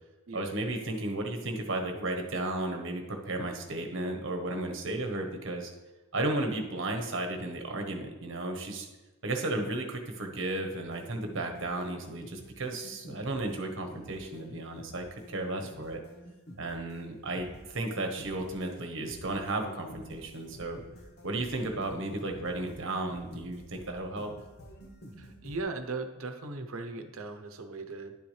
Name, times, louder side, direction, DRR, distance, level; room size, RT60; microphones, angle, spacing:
voice 1, 0.3-5.7 6.1-8.9 9.2-16.0 16.6-17.5 17.7-20.8 21.2-24.3, right 2 dB, 60° right, 4 dB, 1.2 m, -34 dB
sound 1, 10.9-25.6, equal, 50° left, 1.0 m, -50 dB
voice 2, 25.2-28.2, right 3 dB, 80° right, 7 dB, 0.8 m, -38 dB
10.5 x 7.0 x 3.3 m, 1.1 s
head